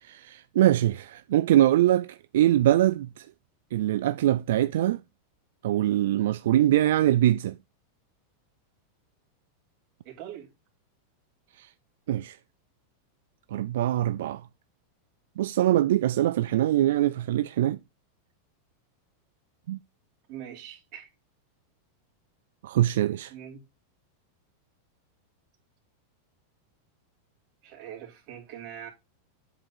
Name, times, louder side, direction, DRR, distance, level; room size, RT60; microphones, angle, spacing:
voice 1, 0.0-3.2 3.7-5.0 5.6-7.6 11.6-11.7 12.1-12.4 13.5-14.4 15.4-17.8 19.7-19.8 22.6-23.3, right 13 dB, 75° right, 0.3 m, -23 dB
voice 2, 10.0-10.5 20.3-21.1 23.3-23.6 27.6-28.9, right 10 dB, 45° right, 2.8 m, -42 dB
7.9 x 3.9 x 4.5 m
supercardioid pair, 145°, 0 cm